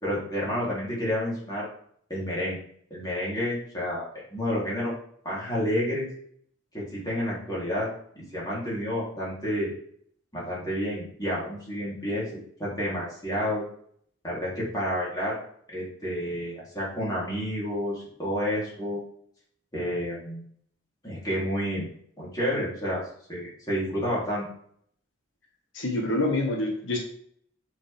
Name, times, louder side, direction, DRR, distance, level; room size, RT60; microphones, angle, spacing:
voice 1, 0.0-1.7 2.1-2.6 2.9-4.9 5.2-6.1 6.7-7.9 8.1-9.7 10.3-12.3 12.6-13.6 14.2-15.4 15.7-19.0 19.7-20.4 21.0-21.9 22.2-23.0 23.3-24.4, equal, 20° left, -6 dB, 3.3 m, -30 dB
voice 2, 25.7-27.0, left 2 dB, 85° left, 1 dB, 1.3 m, -26 dB
8.8 x 5.1 x 3.5 m, 0.63 s
head